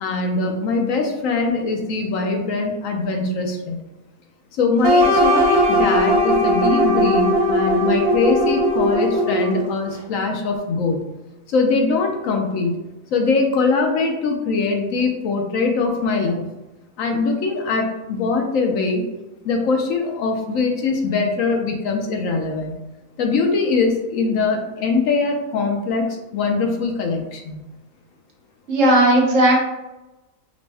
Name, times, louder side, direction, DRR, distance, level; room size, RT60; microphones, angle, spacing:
voice 1, 0.0-3.8 4.5-11.0 11.5-12.7 13.1-16.4 17.0-19.1 19.4-22.7 23.2-27.6, left 4 dB, 65° left, 3 dB, 1.0 m, -22 dB
sound 1, 4.8-9.8, equal, 80° right, 1.4 m, -18 dB
voice 2, 28.7-29.6, right 1 dB, 60° right, -1 dB, 1.2 m, -15 dB
5.0 x 2.1 x 3.4 m, 1.0 s
omnidirectional pair, 1.6 m